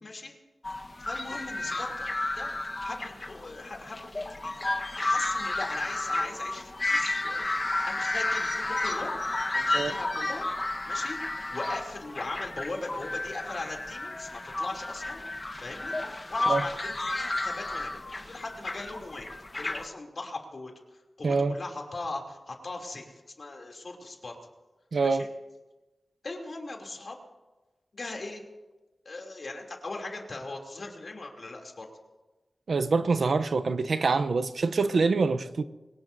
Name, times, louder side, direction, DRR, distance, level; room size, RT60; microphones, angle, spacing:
voice 1, 0.0-0.4 1.0-2.1 2.4-2.5 2.8-4.5 5.0-9.1 9.5-10.5 10.8-11.2 11.5-15.2 15.6-19.3 19.5-24.4 25.0-25.3 26.2-27.2 27.9-28.4 29.0-31.9, left 2 dB, 60° left, 2.9 m, -39 dB
sound 1, 0.6-19.9, left 2 dB, 40° left, 1.2 m, -32 dB
voice 2, 21.2-21.6 24.9-25.3 32.7-35.6, right 4 dB, 75° right, 0.7 m, -25 dB
23.0 x 18.5 x 2.7 m
cardioid pair, 55°, 0 cm